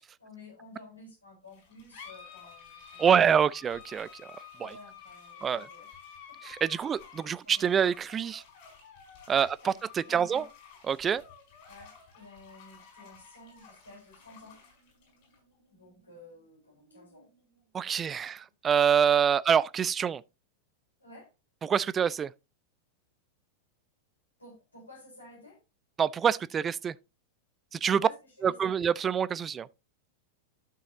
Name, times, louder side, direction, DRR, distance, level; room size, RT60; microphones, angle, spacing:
voice 1, 0.2-3.0 4.6-6.0 7.2-7.7 9.3-9.8 10.1-10.5 11.7-14.6 15.7-17.3 18.1-18.2 21.0-21.3 24.4-25.6 27.9-28.6, left 2 dB, 80° left, 3.9 m, -52 dB
sound 1, 1.5-18.5, left 7 dB, 50° left, 5.0 m, -52 dB
voice 2, 3.0-4.1 5.4-5.6 6.5-8.4 9.3-9.5 10.1-10.4 10.9-11.2 17.7-20.2 21.7-22.3 26.0-26.9 27.8-28.0 28.4-29.7, right 7 dB, 20° right, 0.3 m, -25 dB
12.0 x 6.3 x 2.7 m
figure-of-eight pair, 90°, 0 cm